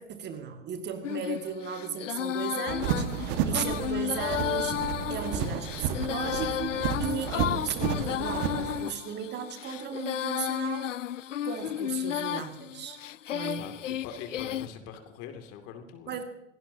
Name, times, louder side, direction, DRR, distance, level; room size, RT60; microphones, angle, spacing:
voice 1, 0.0-10.9 11.4-13.0 13.3-13.7 16.1-16.2, right 7 dB, 30° right, 6 dB, 2.0 m, -36 dB
Female singing, 1.0-14.7, left 11 dB, 80° left, 0.5 m, -33 dB
sound 1, 2.7-8.8, right 8 dB, 45° right, 1.7 m, -32 dB
voice 2, 13.6-16.2, left 7 dB, 40° left, 6 dB, 2.5 m, -43 dB
27.0 x 18.0 x 2.8 m, 0.92 s
figure-of-eight pair, 95°, 37 cm